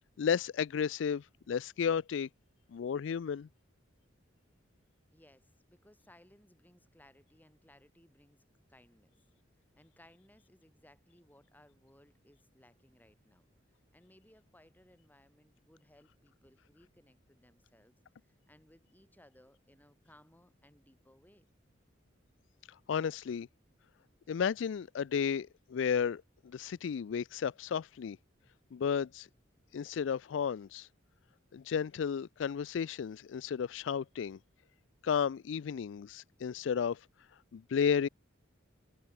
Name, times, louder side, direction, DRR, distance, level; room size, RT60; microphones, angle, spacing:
voice 1, 0.2-2.3 2.7-3.5 22.9-23.5 24.3-28.2 28.7-29.3 29.7-30.9 31.5-34.4 35.0-37.0 37.5-38.1, left 7 dB, 70° left, 0.4 m, -33 dB
voice 2, 5.1-8.4 8.7-9.1 9.8-13.5 13.9-18.0 18.3-21.5, left 1 dB, 10° left, 3.8 m, -63 dB
head